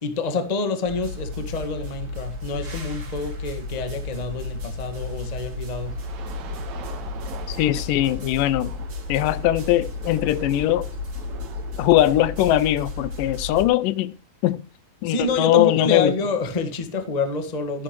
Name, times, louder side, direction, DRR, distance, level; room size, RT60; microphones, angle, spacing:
voice 1, 0.0-5.9 15.0-17.8, left 3 dB, 30° left, 0.7 m, -27 dB
sound 1, 0.8-13.6, left 3 dB, 40° right, 2.6 m, -33 dB
sound 2, 5.9-12.8, right 7 dB, 65° right, 2.5 m, -42 dB
voice 2, 7.5-8.7 9.1-10.9 11.8-14.1 14.4-14.6 15.0-16.2, left 14 dB, 85° left, 2.3 m, -20 dB
14.0 x 10.5 x 3.1 m
omnidirectional pair, 3.8 m